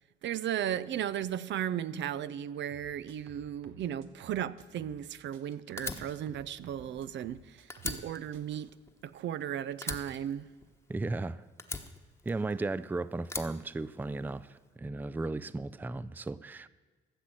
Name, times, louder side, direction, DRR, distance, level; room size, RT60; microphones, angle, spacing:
voice 1, 0.2-8.7 9.0-10.5, right 10 dB, 65° right, 0.5 m, -35 dB
sound 1, 2.7-5.1 5.3-8.1 8.3-8.7, right 2 dB, 90° right, 1.3 m, -56 dB
Fire, 5.8-7.4 7.7-9.4 9.8-11.1 11.6-12.7 13.2-14.4, left 2 dB, 10° left, 1.1 m, -40 dB
voice 2, 10.9-11.5 12.3-16.7, right 3 dB, 10° right, 0.4 m, -35 dB
14.5 x 7.2 x 7.6 m
cardioid pair, 90°, 20 cm